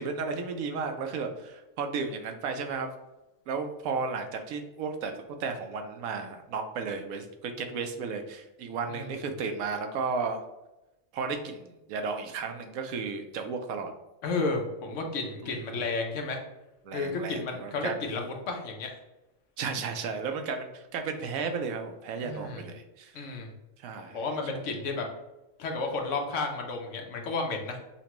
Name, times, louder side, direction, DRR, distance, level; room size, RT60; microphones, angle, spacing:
voice 1, 0.0-2.9 3.5-5.1 5.4-10.4 11.1-13.9 15.4-15.6 16.8-17.9 19.6-23.1 23.8-24.2, right 5 dB, 90° right, 6 dB, 1.0 m, -34 dB
voice 2, 14.2-16.4 16.9-18.9 22.2-22.6 23.1-23.5 24.1-25.1 25.6-27.8, left 3 dB, 70° left, 2 dB, 1.0 m, -32 dB
5.8 x 2.2 x 2.9 m, 0.96 s
omnidirectional pair, 1.4 m